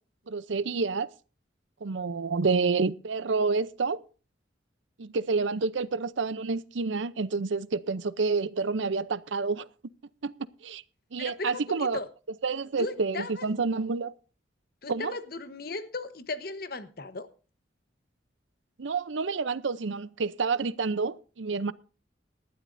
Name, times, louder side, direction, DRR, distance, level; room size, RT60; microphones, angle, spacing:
voice 1, 0.3-1.1 1.8-4.0 5.0-9.7 10.2-10.3 10.6-10.8 11.1-12.0 12.4-14.1 14.9-15.1 18.8-21.7, right 4 dB, 85° right, 0.6 m, -28 dB
voice 2, 11.2-12.1 12.8-13.5 14.8-17.3, left 3 dB, 55° left, 1.1 m, -36 dB
19.0 x 12.5 x 2.6 m
head